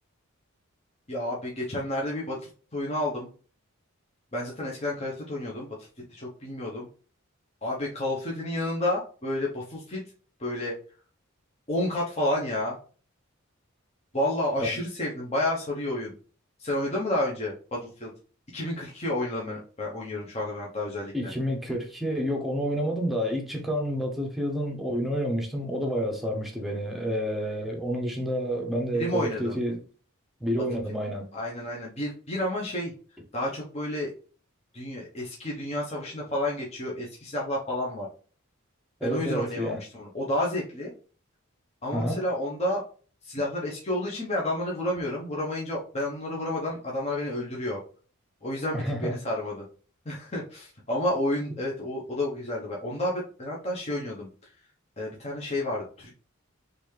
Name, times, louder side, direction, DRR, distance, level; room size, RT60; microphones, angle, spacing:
voice 1, 1.1-3.3 4.3-5.7 6.1-6.9 7.6-10.0 10.4-10.7 11.7-12.8 14.1-16.2 16.6-18.1 18.5-21.3 28.9-29.6 31.3-32.9 33.3-34.1 34.7-38.1 39.0-40.9 41.8-42.8 43.2-47.8 48.4-49.6 50.0-54.3 55.0-56.2, left 1 dB, 30° left, 0.9 m, -30 dB
voice 2, 21.1-29.8 30.4-31.3 39.0-39.8 41.9-42.2 48.7-49.2, equal, ahead, 0.8 m, -29 dB
4.0 x 3.3 x 3.2 m
head